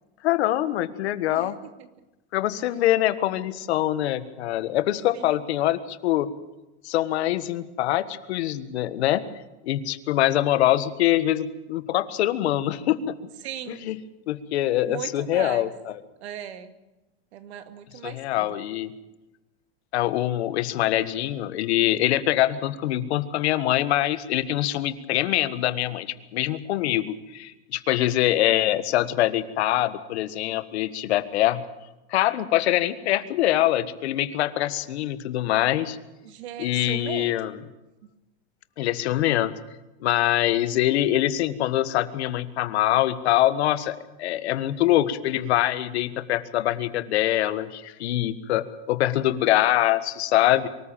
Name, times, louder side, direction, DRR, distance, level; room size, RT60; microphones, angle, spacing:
voice 1, 0.2-1.6 2.3-6.3 6.8-9.3 9.6-13.2 13.7-14.0 14.3-16.0 18.0-18.9 19.9-26.1 26.3-31.6 32.1-36.0 36.6-37.6 38.8-39.5 40.0-50.7, left 14 dB, 80° left, 12 dB, 1.6 m, -24 dB
voice 2, 13.4-13.8 14.9-15.7 16.2-16.7 17.3-18.5 36.2-37.3, right 11 dB, 90° right, 9 dB, 2.2 m, -37 dB
24.0 x 14.0 x 9.1 m, 1.0 s
supercardioid pair, 145°, 32 cm